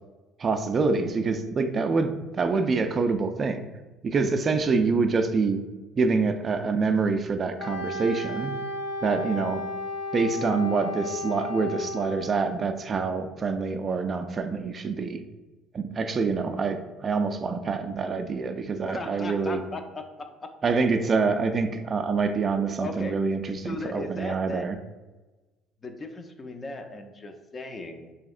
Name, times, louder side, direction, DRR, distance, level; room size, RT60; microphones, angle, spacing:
voice 1, 0.4-3.7 4.0-5.6 6.0-8.5 9.0-9.6 10.1-15.2 15.7-19.6 20.6-24.8, right 4 dB, 40° right, 7 dB, 0.3 m, -26 dB
Wind instrument woodwind instrument, 7.6-12.4, left 2 dB, 65° left, 0.7 m, -34 dB
voice 2, 18.9-20.5 22.8-23.2 23.6-24.7 25.8-28.1, left 2 dB, 30° left, 6 dB, 0.4 m, -37 dB
3.4 x 2.8 x 2.4 m, 1.2 s
supercardioid pair, 70°, 0 cm